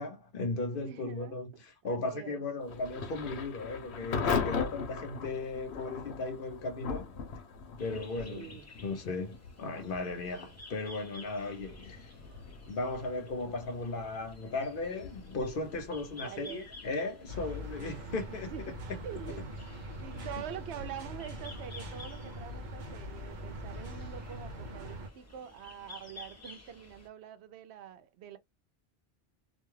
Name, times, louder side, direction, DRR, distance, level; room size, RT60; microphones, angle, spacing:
voice 1, 0.0-7.1 7.8-12.1 12.7-18.5 20.1-20.2, left 3 dB, 60° left, 0.9 m, -36 dB
voice 2, 0.8-2.4 8.3-8.7 16.1-16.7 18.3-18.8 19.0-19.5 20.0-28.4, right 10 dB, 90° right, 0.8 m, -45 dB
Thunder / Rain, 2.6-19.4, left 5 dB, 90° left, 1.0 m, -40 dB
sound 1, 7.8-27.1, left 3 dB, 20° left, 0.6 m, -53 dB
sound 2, 17.3-25.1, equal, 50° right, 0.7 m, -42 dB
2.5 x 2.3 x 3.1 m
omnidirectional pair, 1.1 m